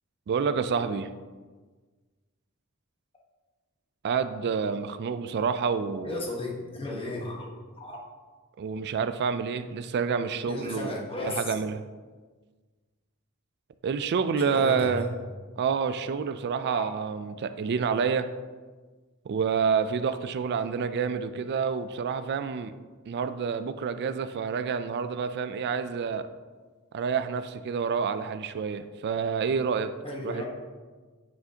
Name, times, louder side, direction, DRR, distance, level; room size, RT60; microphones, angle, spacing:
voice 1, 0.3-1.1 4.0-6.2 8.6-11.0 11.2-11.8 13.8-15.1 15.6-18.3 19.3-22.7 23.1-26.3 26.9-29.9 30.2-30.4, right 6 dB, 50° right, 11 dB, 0.3 m, -28 dB
voice 2, 6.0-7.5 7.8-8.0 10.5-11.4 14.4-15.1 16.6-16.9 30.0-30.4, left 2 dB, 25° left, -2 dB, 1.2 m, -34 dB
6.9 x 6.4 x 2.8 m, 1.4 s
head